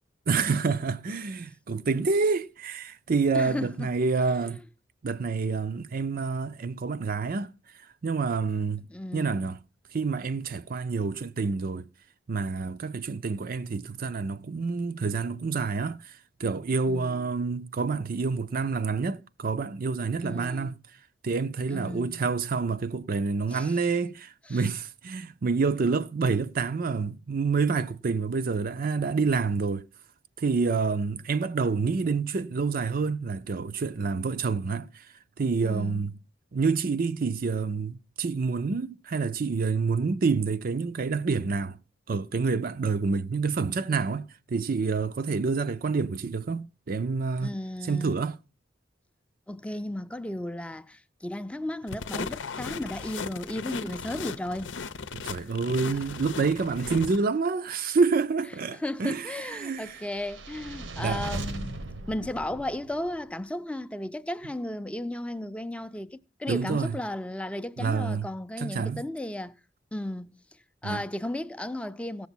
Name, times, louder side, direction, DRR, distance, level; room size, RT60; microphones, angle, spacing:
voice 1, 0.3-4.6 5.0-7.5 8.0-8.9 9.1-9.6 9.9-11.8 12.3-20.8 21.2-29.9 30.4-35.1 35.4-36.2 36.5-41.8 42.1-47.5 47.8-48.4 55.1-60.0 61.0-61.3 66.5-67.0 67.8-68.3 68.6-69.0 70.8-71.0, right 4 dB, 50° right, 0.5 m, -28 dB
voice 2, 3.3-3.9 4.4-4.6 8.9-9.6 16.9-17.3 20.2-20.7 21.7-22.3 23.5-23.8 24.5-24.7 35.6-36.1 47.4-48.1 49.5-54.7 58.7-61.8 62.1-69.6 69.9-70.4 70.8-72.3, left 1 dB, 5° left, 0.5 m, -35 dB
sound 1, 51.9-57.2, left 5 dB, 85° left, 0.7 m, -37 dB
sound 2, 59.8-63.2, right 2 dB, 90° right, 1.3 m, -38 dB
16.5 x 7.0 x 4.3 m
head